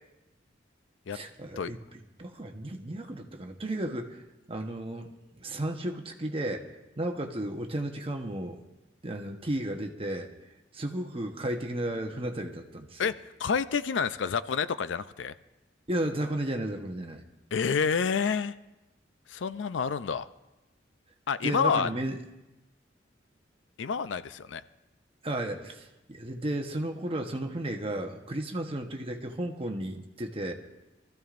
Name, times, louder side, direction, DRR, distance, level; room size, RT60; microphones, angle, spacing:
voice 1, 1.1-1.8 2.2-4.2 4.5-5.1 5.4-6.7 7.0-8.6 9.0-10.3 10.7-13.1 15.9-17.2 21.4-22.2 25.2-30.5, right 1 dB, 30° right, 4 dB, 1.1 m, -33 dB
voice 2, 13.4-15.3 17.5-18.6 19.3-20.3 21.3-21.9 23.8-24.6, left 6 dB, 75° left, 14 dB, 0.5 m, -28 dB
25.5 x 14.5 x 2.5 m, 1.0 s
head